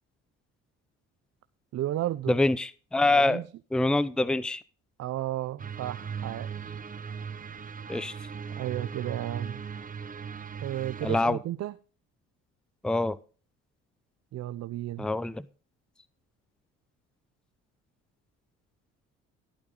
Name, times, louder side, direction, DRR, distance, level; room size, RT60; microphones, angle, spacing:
voice 1, 1.7-2.4 3.1-3.5 5.0-6.7 8.5-9.6 10.6-11.7 14.3-15.1, right 13 dB, 55° right, 0.7 m, -33 dB
voice 2, 2.3-3.4 3.7-4.6 7.9-8.1 11.0-11.4 12.8-13.2 15.0-15.4, left 2 dB, 5° left, 0.6 m, -25 dB
sound 1, 5.6-11.3, right 6 dB, 30° right, 1.0 m, -38 dB
14.5 x 8.9 x 3.8 m
supercardioid pair, 85°, 30 cm